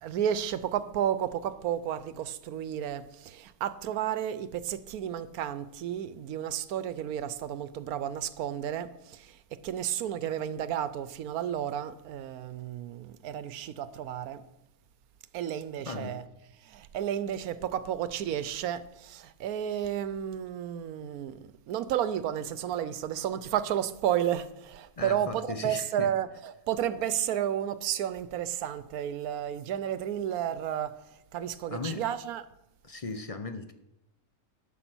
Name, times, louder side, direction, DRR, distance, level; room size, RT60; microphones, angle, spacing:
voice 1, 0.0-14.4 15.3-16.3 16.6-31.0 31.3-32.5, right 10 dB, 85° right, 1.1 m, -32 dB
voice 2, 15.8-16.1 25.0-26.1 31.7-32.1 32.8-33.7, left 3 dB, 40° left, 0.5 m, -37 dB
12.0 x 6.7 x 6.1 m
omnidirectional pair, 1.5 m